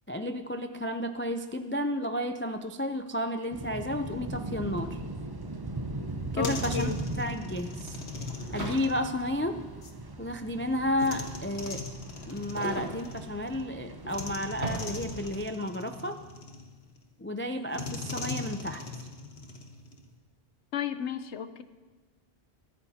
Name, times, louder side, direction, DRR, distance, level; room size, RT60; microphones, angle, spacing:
voice 1, 0.1-5.0 6.3-6.9 7.2-8.0 8.5-9.6 10.2-11.9 12.3-16.2 17.2-18.8, left 1 dB, 20° left, 7 dB, 0.3 m, -32 dB
sound 1, 3.5-15.4, right 2 dB, 25° right, 0.7 m, -39 dB
sound 2, 4.8-4.9 5.1-15.5, right 1 dB, 70° right, 2.7 m, -42 dB
sound 3, 6.1-10.0 11.0-13.6 14.1-17.0 17.7-20.1, left 3 dB, 70° left, 1.5 m, -41 dB
voice 2, 6.4-7.0 20.7-21.6, left 8 dB, 90° left, 11 dB, 1.1 m, -33 dB
22.5 x 14.0 x 2.8 m, 1.3 s
omnidirectional pair, 1.1 m